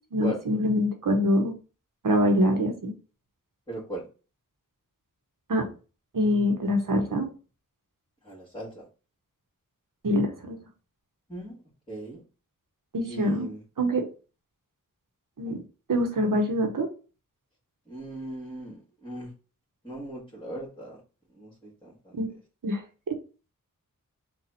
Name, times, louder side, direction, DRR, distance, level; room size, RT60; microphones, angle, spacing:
voice 1, 0.1-1.5 2.0-2.9 5.5-5.6 6.1-7.3 10.0-10.6 12.9-13.5 13.8-14.0 15.4-15.6 15.9-16.9 22.2-22.3 22.6-22.8 23.1-23.2, equal, 70° right, 4 dB, 0.9 m, -24 dB
voice 2, 3.7-4.1 8.2-8.9 11.3-11.6 11.9-12.2 13.1-13.6 15.4-15.6 17.9-19.3 19.8-21.0 21.3-22.2, right 1 dB, 15° left, -6 dB, 1.9 m, -38 dB
4.1 x 2.4 x 4.1 m, 0.35 s
wide cardioid pair, 75°, 33 cm